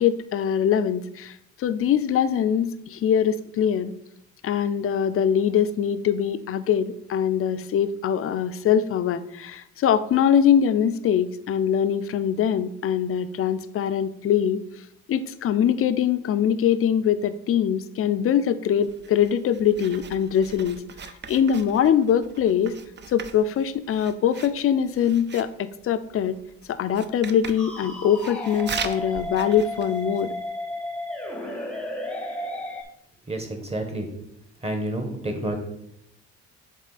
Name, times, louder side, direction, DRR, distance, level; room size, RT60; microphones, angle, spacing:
voice 1, 0.0-3.9 4.4-22.7 23.1-26.4 26.7-30.3, left 8 dB, 45° left, 12 dB, 0.5 m, -23 dB
Writing, 18.8-30.4, right 6 dB, 35° right, 0.5 m, -40 dB
sound 1, 27.6-32.8, left 1 dB, 5° left, 0.9 m, -33 dB
voice 2, 33.3-34.1 34.6-35.6, right 1 dB, 20° right, 4 dB, 1.3 m, -29 dB
7.3 x 3.7 x 4.0 m, 0.78 s
cardioid pair, 90°, 30 cm